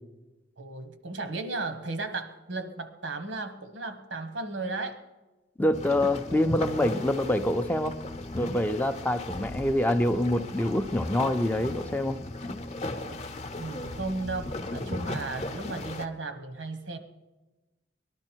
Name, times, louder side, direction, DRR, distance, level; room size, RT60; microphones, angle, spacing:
voice 1, 0.6-5.0 13.0-13.2 13.6-17.0, right 3 dB, 90° right, 8 dB, 1.2 m, -35 dB
voice 2, 5.6-8.0 8.3-12.2 13.7-13.9, left 1 dB, 10° left, 8 dB, 0.4 m, -26 dB
sound 1, 5.7-16.1, left 2 dB, 40° left, 0.7 m, -37 dB
19.0 x 12.0 x 4.5 m, 1.1 s
head